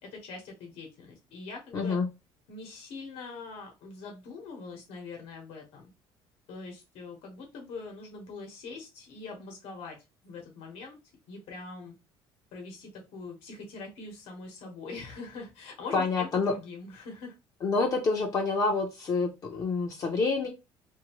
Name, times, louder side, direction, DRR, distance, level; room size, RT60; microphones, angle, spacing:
voice 1, 0.0-2.0 2.5-5.9 6.5-10.0 10.2-10.9 11.3-11.9 12.5-17.3, left 4 dB, 70° left, 2 dB, 1.2 m, -43 dB
voice 2, 1.7-2.1 15.9-16.5 17.6-20.5, left 4 dB, 35° left, 1 dB, 0.6 m, -27 dB
2.7 x 2.6 x 2.9 m, 0.24 s
cardioid pair, 155°, 10 cm